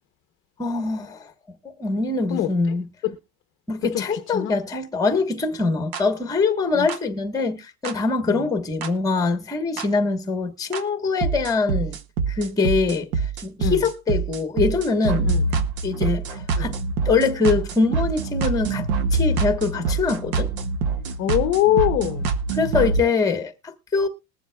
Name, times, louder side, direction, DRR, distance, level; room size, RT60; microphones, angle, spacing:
voice 1, 0.6-1.3 1.8-2.9 3.7-12.0 12.3-15.3 15.8-16.8 17.0-20.5 22.5-24.1, left 4 dB, 10° left, 1.2 m, -23 dB
voice 2, 3.9-4.5 6.7-6.9 8.3-8.4 13.6-13.8 15.3-15.4 16.6-16.7 21.2-22.3, left 12 dB, 30° left, 0.8 m, -23 dB
sound 1, 5.9-6.0 6.9-7.0 7.9-8.0 8.8-8.9 9.8-9.9 10.7-10.8 11.2-23.0, right 4 dB, 75° right, 1.5 m, -25 dB
21.0 x 7.2 x 2.3 m
supercardioid pair, 145°, 42 cm